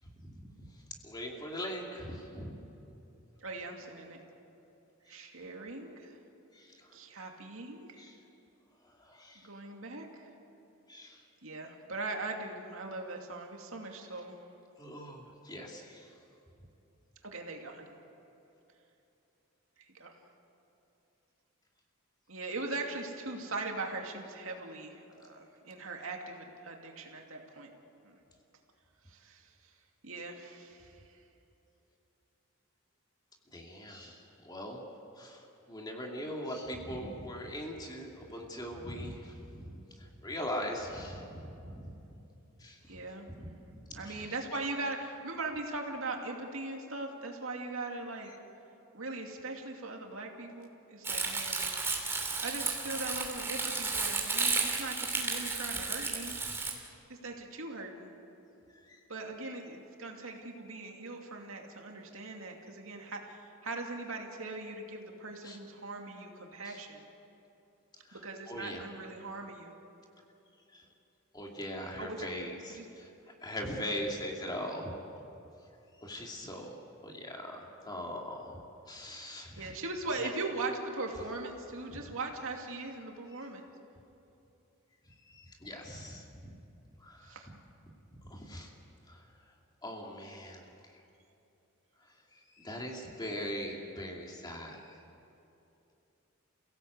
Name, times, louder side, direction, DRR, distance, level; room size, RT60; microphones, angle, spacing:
voice 1, 0.3-0.7 1.0-2.6 5.1-5.2 6.5-6.9 8.0-8.2 8.8-9.5 10.9-11.2 14.8-16.1 33.5-34.8 35.1-42.0 42.6-43.0 43.4-44.3 58.8-59.0 65.4-65.6 66.6-66.8 68.0-68.2 68.5-68.8 70.7-70.9 71.3-74.9 76.0-76.8 77.0-79.8 80.1-80.3 82.0-82.1 85.2-86.6 87.0-87.5 88.2-88.7 89.1-89.3 89.8-91.0 92.3-95.0, equal, 20° left, 0 dB, 2.6 m, -41 dB
voice 2, 3.4-4.2 5.1-6.2 6.9-8.0 9.3-10.3 11.4-14.4 17.2-17.9 19.8-20.2 22.3-27.7 28.0-28.2 29.1-29.5 30.0-31.0 42.9-43.3 43.9-48.3 48.9-51.7 52.4-56.4 57.1-58.1 59.1-67.0 68.1-69.7 72.0-72.2 72.7-72.9 73.8-74.0 79.6-83.6 87.2-87.5, right 2 dB, 70° right, 2 dB, 2.5 m, -40 dB
Crumpling crinkling, 51.0-56.7, right 3 dB, 10° right, 2.7 m, -33 dB
29.0 x 17.0 x 8.2 m, 2.9 s
head